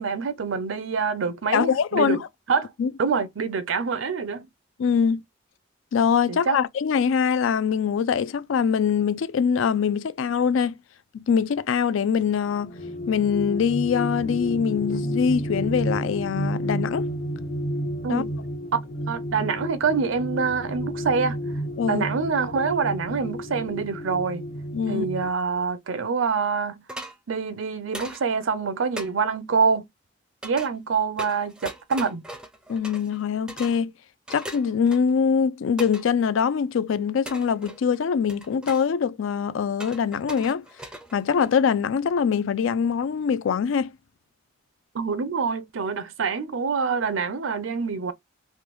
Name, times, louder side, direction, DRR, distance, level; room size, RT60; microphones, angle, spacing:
voice 1, 0.0-2.2 2.5-2.7 3.0-4.5 6.3-6.6 18.0-18.3 19.1-21.4 21.9-24.4 24.9-26.8 27.3-29.9 30.4-32.2 44.9-48.1, right 5 dB, 75° right, 0.5 m, -26 dB
voice 2, 1.5-2.2 2.8-2.9 4.8-5.2 5.9-10.8 11.1-12.7 13.1-17.1 18.1-18.2 21.8-22.1 24.7-25.1 32.7-33.9 34.3-40.6 41.1-43.9, left 6 dB, 75° left, 0.4 m, -23 dB
sound 1, 12.5-25.3, equal, 45° left, 0.8 m, -31 dB
sound 2, 26.9-27.2 27.9-28.2 29.0-29.1 30.4-30.7 31.2-33.2 33.5-33.8 34.3-35.2 35.8-36.1 37.2-38.0 38.3-38.9 39.8-41.7, right 1 dB, 5° right, 0.4 m, -39 dB
3.4 x 2.2 x 3.0 m
head